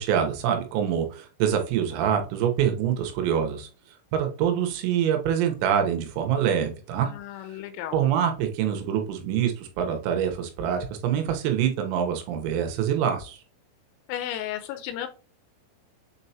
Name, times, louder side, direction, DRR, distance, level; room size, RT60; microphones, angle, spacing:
voice 1, 0.0-3.7 4.1-7.1 7.9-13.4, right 9 dB, 85° right, 5 dB, 3.8 m, -25 dB
voice 2, 7.0-8.0 14.1-15.1, left 11 dB, 90° left, 7 dB, 3.3 m, -34 dB
7.5 x 4.6 x 2.8 m, 0.36 s
omnidirectional pair, 5.9 m